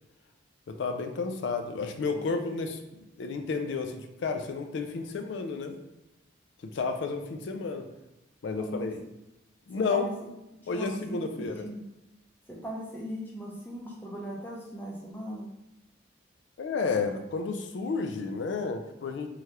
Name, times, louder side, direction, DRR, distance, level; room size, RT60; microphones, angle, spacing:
voice 1, 0.7-5.8 6.6-7.9 8.4-8.9 9.7-10.1 10.7-11.6 16.6-19.3, left 4 dB, 60° left, 6 dB, 0.3 m, -31 dB
voice 2, 10.6-11.8 12.5-15.5, equal, 10° left, -3 dB, 0.5 m, -39 dB
3.2 x 2.3 x 2.8 m, 0.94 s
head